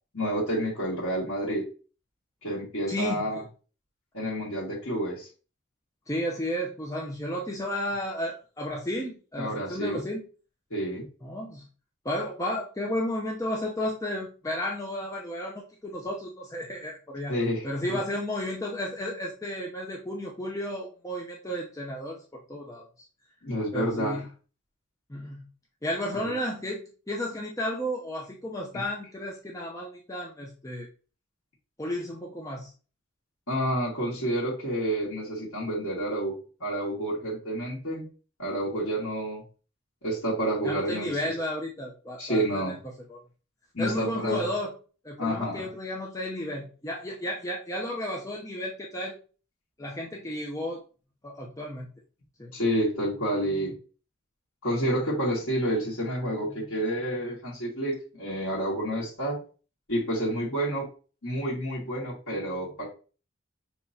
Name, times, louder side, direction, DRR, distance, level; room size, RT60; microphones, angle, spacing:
voice 1, 0.1-1.7 2.4-3.4 4.1-5.3 9.4-10.0 10.7-11.1 17.3-18.0 23.4-24.2 26.2-26.3 28.7-28.8 33.5-38.0 38.4-39.4 40.0-41.1 42.2-42.8 43.7-44.4 45.2-45.7 52.5-53.8 54.6-59.4 59.9-60.9 61.2-62.8, right 1 dB, 85° left, -7 dB, 1.9 m, -29 dB
voice 2, 2.9-3.4 6.1-10.2 11.2-11.6 12.0-17.3 17.6-22.2 22.5-22.9 23.7-24.2 25.1-25.5 25.8-30.9 31.8-32.7 40.6-43.2 43.8-44.7 45.0-49.2 49.8-50.8 51.2-51.9 52.4-52.5, left 1 dB, 15° left, -2 dB, 0.6 m, -33 dB
6.4 x 3.0 x 2.7 m, 0.36 s
head